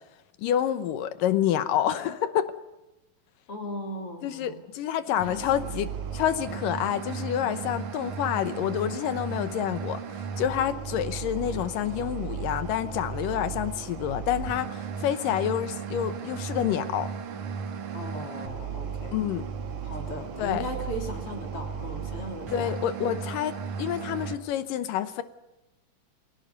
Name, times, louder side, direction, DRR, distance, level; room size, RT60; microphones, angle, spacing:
voice 1, 0.4-2.5 4.2-10.0 10.4-17.1 19.1-19.5 20.4-20.6 22.5-25.2, left 10 dB, 75° left, 12 dB, 2.6 m, -28 dB
voice 2, 3.5-4.6 5.1-5.7 17.9-19.2 19.8-22.7, equal, 40° left, 2 dB, 4.2 m, -37 dB
sound 1, 5.2-24.4, right 6 dB, 60° right, 2.9 m, -35 dB
28.5 x 19.0 x 5.3 m, 0.95 s
omnidirectional pair, 3.9 m